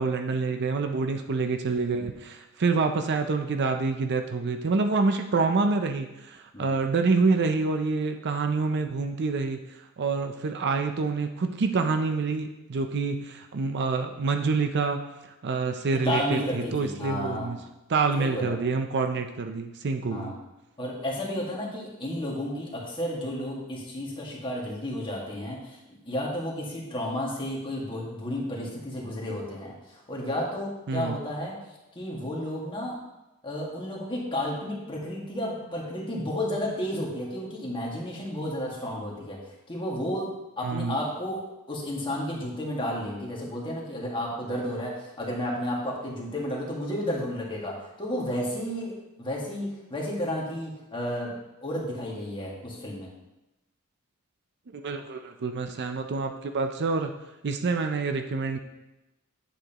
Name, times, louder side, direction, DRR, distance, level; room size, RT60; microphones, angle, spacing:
voice 1, 0.0-9.6 10.0-15.0 15.4-17.6 17.9-20.3 30.9-31.2 40.6-41.0 54.7-57.1 57.4-58.6, right 4 dB, 50° right, 6 dB, 0.5 m, -27 dB
voice 2, 15.9-17.6 18.2-18.5 20.1-20.4 20.8-31.5 31.9-33.0 33.4-39.4 39.7-41.4 41.7-51.3 51.6-53.1, left 1 dB, 25° left, -3 dB, 1.8 m, -32 dB
8.9 x 7.8 x 3.0 m, 0.97 s
head